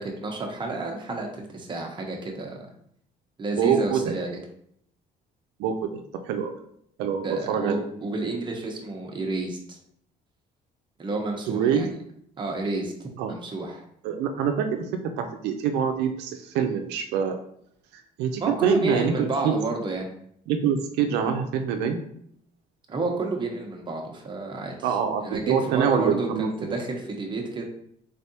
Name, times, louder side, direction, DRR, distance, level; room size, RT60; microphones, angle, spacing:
voice 1, 0.0-2.6 3.4-4.4 7.2-9.8 11.0-11.9 12.4-13.8 18.4-20.1 22.9-25.0 25.2-27.6, right 3 dB, 30° right, 1 dB, 0.9 m, -30 dB
voice 2, 3.6-4.1 5.6-6.5 7.0-7.8 11.5-11.9 13.2-13.3 14.0-17.4 17.9-19.5 20.5-22.0 24.8-26.8, right 7 dB, 90° right, 5 dB, 0.5 m, -25 dB
3.7 x 3.3 x 2.8 m, 0.69 s
cardioid pair, 110°, 17 cm